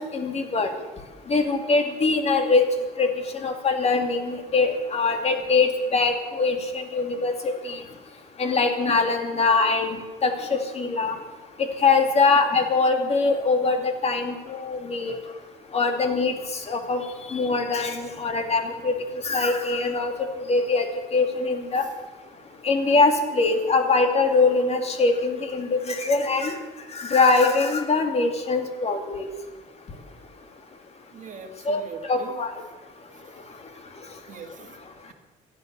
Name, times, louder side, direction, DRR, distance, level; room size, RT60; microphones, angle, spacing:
voice 1, 0.1-0.7 1.3-2.6 3.0-3.1 3.4-7.8 8.4-10.0 10.2-11.1 11.8-15.2 15.7-16.3 16.7-17.0 17.3-18.9 19.2-20.1 20.5-20.9 21.1-21.8 22.6-26.5 27.0-29.3 31.7-31.8 32.1-32.5, left 3 dB, 40° left, 5 dB, 2.6 m, -22 dB
voice 2, 31.1-32.4 34.3-34.7, right 5 dB, 45° right, 6 dB, 1.8 m, -41 dB
17.0 x 12.0 x 6.9 m, 1.2 s
cardioid pair, 110°, 17 cm